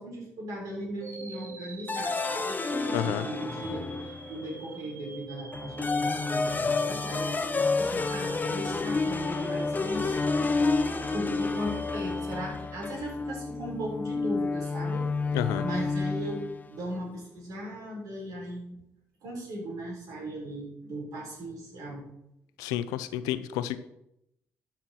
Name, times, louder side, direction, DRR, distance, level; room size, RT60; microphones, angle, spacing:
voice 1, 0.0-10.5 11.1-18.8 19.2-22.1, equal, 70° right, -1 dB, 4.2 m, -38 dB
sound 1, 1.0-13.1, right 4 dB, 55° right, 2.2 m, -45 dB
sound 2, 1.9-4.5 5.5-16.6, left 3 dB, 30° left, 0.8 m, -30 dB
voice 2, 2.9-3.3 15.3-15.6 22.6-23.8, left 12 dB, 85° left, 13 dB, 0.6 m, -30 dB
12.5 x 5.9 x 4.4 m, 0.80 s
supercardioid pair, 60°, 6 cm